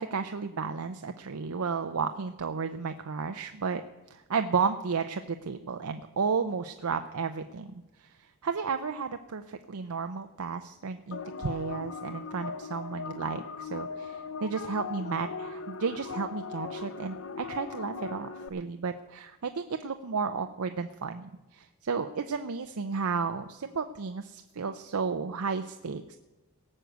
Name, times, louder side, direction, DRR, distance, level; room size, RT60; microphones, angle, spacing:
voice 1, 0.0-3.8 4.1-7.7 8.0-8.1 8.4-26.2, right 5 dB, 80° right, 7 dB, 0.6 m, -33 dB
sound 1, 11.1-18.5, left 5 dB, 65° left, 0.7 m, -39 dB
17.5 x 6.5 x 8.0 m, 1.1 s
head